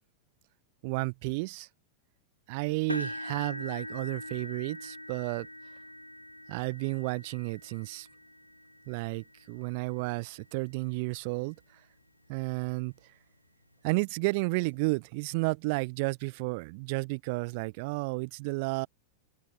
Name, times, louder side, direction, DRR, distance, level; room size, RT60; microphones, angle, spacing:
voice 1, 0.8-1.7 2.5-5.5 6.5-8.1 8.9-11.6 12.3-12.9 13.8-18.9, right 28 dB, 45° right, 1.0 m, -32 dB
sound 1, 2.9-10.9 11.6-11.8 12.2-12.3 13.7-13.8, left 1 dB, 90° left, 3.3 m, -43 dB
figure-of-eight pair, 90°, 0 cm